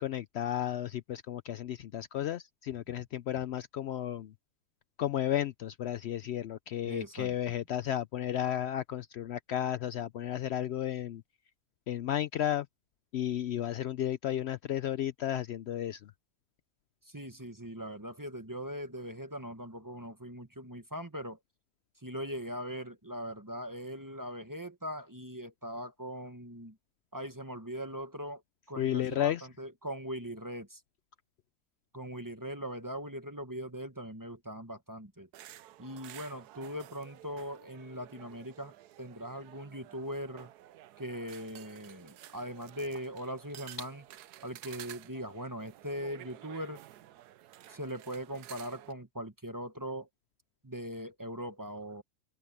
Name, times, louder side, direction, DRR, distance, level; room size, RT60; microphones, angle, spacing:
voice 1, 0.0-4.3 5.0-11.2 11.9-12.7 13.1-16.1 28.8-29.5, left 11 dB, 90° left, 0.5 m, -33 dB
voice 2, 6.8-7.3 17.1-21.4 22.0-26.8 27.1-28.4 28.7-30.8 31.9-35.3 35.8-40.5 41.0-44.0 44.4-46.8 47.7-50.1 50.6-52.0, equal, 15° right, 1.2 m, -40 dB
sound 1, 35.3-48.9, right 13 dB, 85° right, 1.2 m, -52 dB
omnidirectional pair, 1.7 m